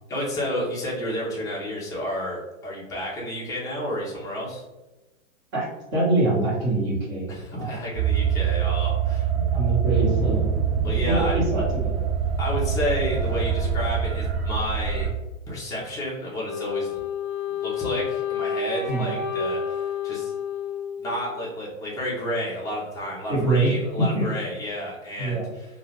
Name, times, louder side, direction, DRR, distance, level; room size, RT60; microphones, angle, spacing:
voice 1, 0.1-4.6 7.3-9.3 10.8-11.4 12.4-15.1 15.5-17.0 17.6-20.3 21.0-25.8, equal, 10° left, -5 dB, 0.5 m, -31 dB
voice 2, 5.9-7.7 9.3-10.5 11.1-12.0 18.9-19.1 23.3-23.7 24.1-24.3 25.2-25.5, right 2 dB, 30° right, -6 dB, 1.2 m, -24 dB
sound 1, 8.0-15.1, right 7 dB, 50° right, 0.6 m, -24 dB
Wind instrument woodwind instrument, 16.5-21.5, left 6 dB, 30° left, 0.9 m, -30 dB
2.4 x 2.3 x 3.2 m, 1.1 s
hypercardioid pair, 130°, 40 cm